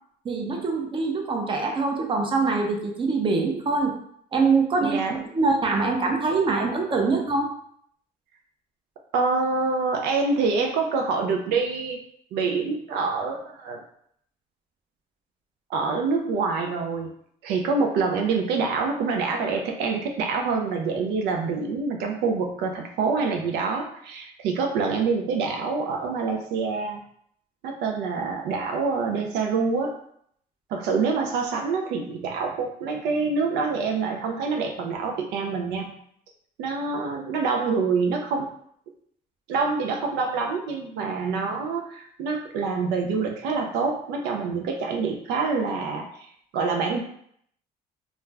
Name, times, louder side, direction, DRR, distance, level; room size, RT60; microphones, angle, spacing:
voice 1, 0.2-4.0 4.3-7.5, right 4 dB, 30° right, 2 dB, 0.6 m, -24 dB
voice 2, 4.8-5.2 9.1-12.0 12.3-13.8 15.7-17.1 17.4-27.0 27.6-30.0 30.7-35.9 36.6-38.5 39.5-47.0, right 4 dB, 85° right, 2 dB, 0.4 m, -26 dB
2.3 x 2.1 x 3.2 m, 0.66 s
cardioid pair, 110°, 17 cm